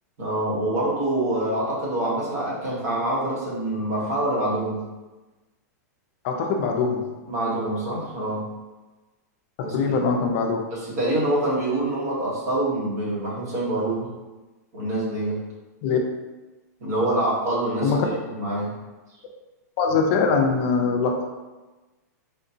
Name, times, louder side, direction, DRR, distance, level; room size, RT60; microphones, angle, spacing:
voice 1, 0.2-4.8 7.3-8.5 9.6-9.7 10.7-14.1 14.7-15.4 16.8-18.1 18.3-18.7, right 1 dB, 65° right, -6 dB, 1.5 m, -25 dB
voice 2, 6.2-7.1 9.6-10.6 15.8-16.0 17.8-18.1 19.8-21.3, left 5 dB, 45° left, 2 dB, 0.4 m, -22 dB
3.6 x 2.6 x 2.7 m, 1.2 s
supercardioid pair, 155°, 9 cm